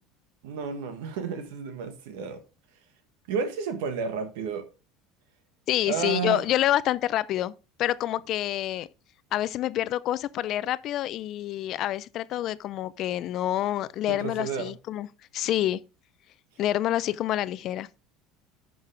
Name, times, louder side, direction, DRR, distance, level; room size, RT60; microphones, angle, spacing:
voice 1, 0.4-2.4 3.3-4.7 5.8-6.5 14.1-14.7, right 6 dB, 75° right, 1.6 m, -31 dB
voice 2, 5.7-7.5 7.8-8.9 9.3-15.1 15.3-15.8 16.6-17.9, left 13 dB, 55° left, 0.5 m, -27 dB
11.0 x 5.4 x 3.4 m
hypercardioid pair, 85°, 0 cm